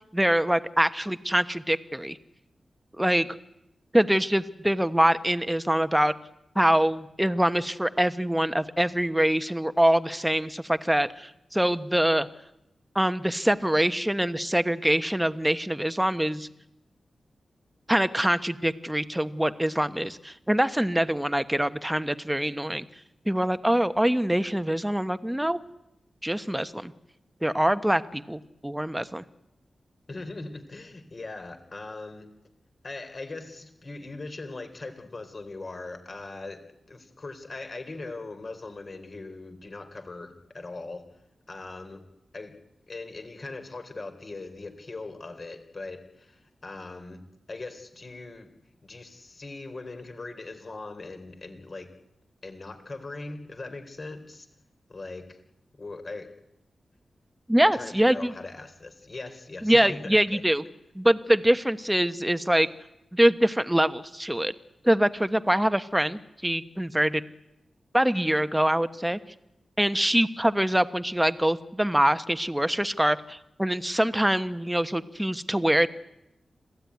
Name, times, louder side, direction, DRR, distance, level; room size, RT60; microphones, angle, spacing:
voice 1, 0.1-2.2 3.0-3.3 3.9-6.1 6.5-12.3 12.9-16.5 17.9-22.9 23.3-25.6 26.2-26.9 27.4-29.2 57.5-58.3 59.6-60.6 60.9-62.7 63.1-64.5 64.8-67.2 67.9-69.2 69.8-75.9, right 1 dB, 5° right, 11 dB, 1.1 m, -24 dB
voice 2, 30.1-32.3 32.8-41.1 41.5-42.0 42.3-42.6 42.9-47.2 47.5-48.5 48.8-51.9 52.4-54.5 54.9-55.4 55.7-56.4 57.6-60.5, left 3 dB, 45° left, 7 dB, 3.5 m, -40 dB
26.0 x 17.0 x 9.5 m, 0.87 s
wide cardioid pair, 85°, 0 cm